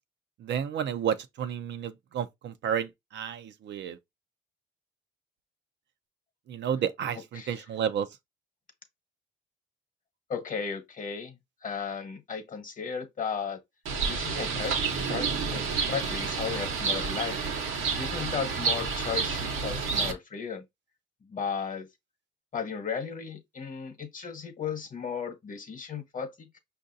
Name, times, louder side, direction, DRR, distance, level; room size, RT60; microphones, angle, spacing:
voice 1, 0.4-2.9 3.1-4.0 6.5-8.1, right 8 dB, 65° right, 0.5 m, -31 dB
voice 2, 7.1-7.7 10.3-13.6 14.1-14.8 15.1-15.6 15.9-17.4 18.0-20.6 21.3-21.9 22.5-26.6, left 6 dB, 40° left, 1.0 m, -35 dB
Bird, 13.9-20.1, right 5 dB, 85° right, 1.0 m, -29 dB
5.4 x 2.5 x 2.6 m
cardioid pair, 90°, 20 cm